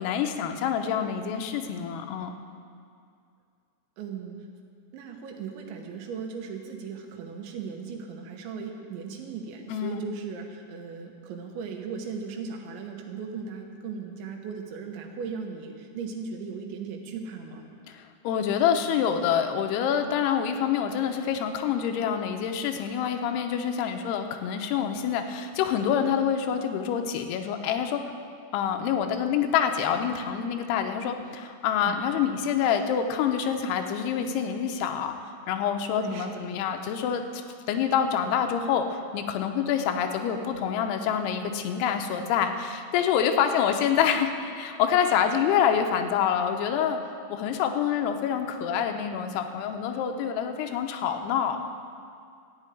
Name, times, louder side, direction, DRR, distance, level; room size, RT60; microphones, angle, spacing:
voice 1, 0.0-2.4 9.7-10.0 17.9-28.1 28.5-37.2 37.7-47.0 47.3-51.6, left 8 dB, 75° left, 5 dB, 2.6 m, -26 dB
voice 2, 4.0-4.4 4.9-17.7 31.9-32.0 36.0-36.5, right 5 dB, 90° right, 2 dB, 3.5 m, -37 dB
14.0 x 5.3 x 9.1 m, 2.3 s
omnidirectional pair, 5.1 m